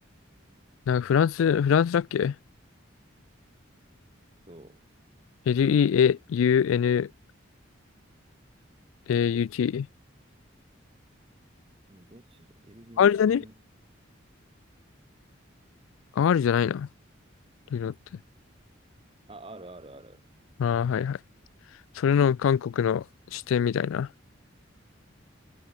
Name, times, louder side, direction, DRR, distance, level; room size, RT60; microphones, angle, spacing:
voice 1, 0.9-2.3 5.5-7.1 9.1-9.9 13.0-13.4 16.2-16.9 17.7-17.9 20.6-21.2 22.0-23.0 23.3-24.1, left 7 dB, 85° left, 0.3 m, -23 dB
voice 2, 4.5-4.8 11.9-13.5 19.3-20.2, right 2 dB, 30° right, 1.6 m, -48 dB
head